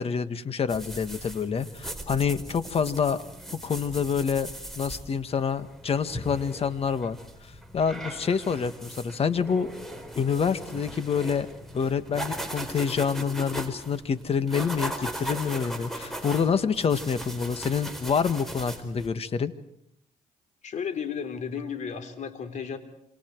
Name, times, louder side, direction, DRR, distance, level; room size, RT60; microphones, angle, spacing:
voice 1, 0.0-3.2 3.6-4.5 4.7-7.2 7.7-9.7 10.1-11.5 11.7-19.5, left 6 dB, 45° left, 12 dB, 1.7 m, -27 dB
sound 1, 0.7-19.1, right 1 dB, ahead, 4.5 m, -39 dB
voice 2, 20.6-22.8, left 7 dB, 60° left, 7 dB, 3.6 m, -33 dB
27.5 x 27.0 x 4.7 m, 0.76 s
cardioid pair, 95°, 14 cm